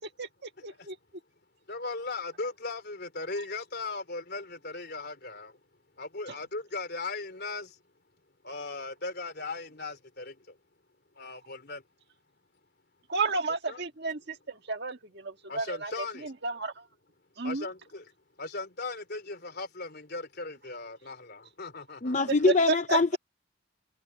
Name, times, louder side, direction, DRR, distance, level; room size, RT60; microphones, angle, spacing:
voice 1, 0.2-1.0 6.3-6.4 13.1-16.9 17.4-17.7 22.7-23.2, right 3 dB, 55° right, 1.8 m, -33 dB
voice 2, 1.7-5.6 6.0-7.8 8.4-10.6 11.2-11.8 13.7-13.8 15.5-16.3 17.4-18.0 18.4-22.3, left 3 dB, 50° left, 3.7 m, -38 dB
voice 3, 22.0-23.2, left 3 dB, 35° left, 0.6 m, -24 dB
head